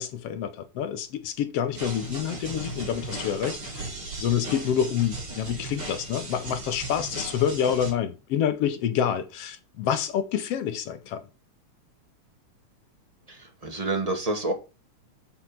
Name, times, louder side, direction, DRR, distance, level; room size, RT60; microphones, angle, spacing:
voice 1, 0.0-3.9 4.2-11.2, left 9 dB, 70° left, 1.7 m, -27 dB
sound 1, 1.7-7.9, right 2 dB, 45° right, 4.5 m, -37 dB
voice 2, 13.3-14.5, right 2 dB, 15° right, 1.3 m, -28 dB
7.2 x 6.2 x 5.8 m
omnidirectional pair, 3.3 m